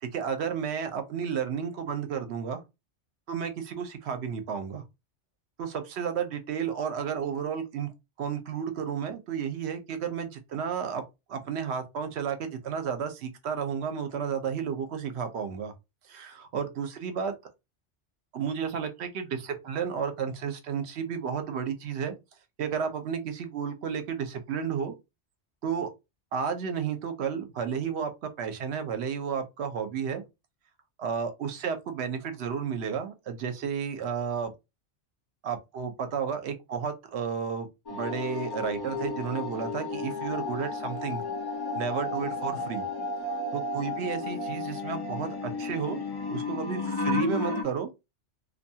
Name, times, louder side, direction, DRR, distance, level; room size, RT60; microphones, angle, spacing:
voice 1, 0.0-2.6 3.3-4.8 5.6-7.9 8.2-11.0 11.3-15.7 16.1-17.3 18.3-22.1 22.6-24.9 25.6-25.9 26.3-30.2 31.0-34.5 35.4-41.2 41.7-42.8 43.5-46.0 46.3-47.9, right 7 dB, 70° right, 0.9 m, -32 dB
sound 1, 37.9-47.6, left 3 dB, 40° left, 0.3 m, -33 dB
2.6 x 2.2 x 2.7 m
omnidirectional pair, 1.2 m